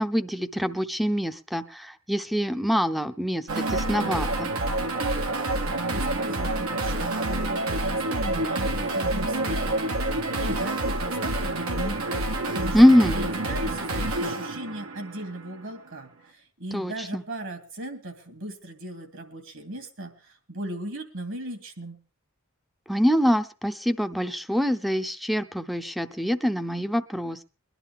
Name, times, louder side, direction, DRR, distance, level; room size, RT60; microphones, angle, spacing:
voice 1, 0.0-4.5 12.7-13.2 16.7-17.2 22.9-27.4, equal, ahead, 12 dB, 0.6 m, -24 dB
sound 1, 3.5-15.5, right 2 dB, 85° right, 1.8 m, -28 dB
voice 2, 4.9-12.8 13.1-22.0, right 1 dB, 65° right, 6 dB, 2.7 m, -38 dB
22.0 x 11.0 x 3.6 m, 0.34 s
head